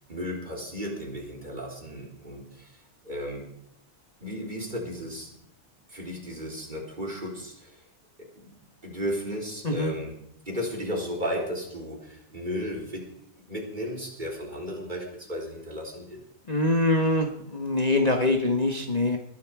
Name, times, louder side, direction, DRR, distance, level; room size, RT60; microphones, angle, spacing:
voice 1, 0.1-2.8 3.0-3.5 4.2-5.3 5.9-7.8 8.8-10.2 10.5-13.1 13.4-16.2, equal, 30° right, 0 dB, 4.0 m, -34 dB
voice 2, 16.5-19.2, left 2 dB, 30° left, 3 dB, 1.4 m, -24 dB
20.5 x 12.0 x 4.8 m, 0.75 s
omnidirectional pair, 1.5 m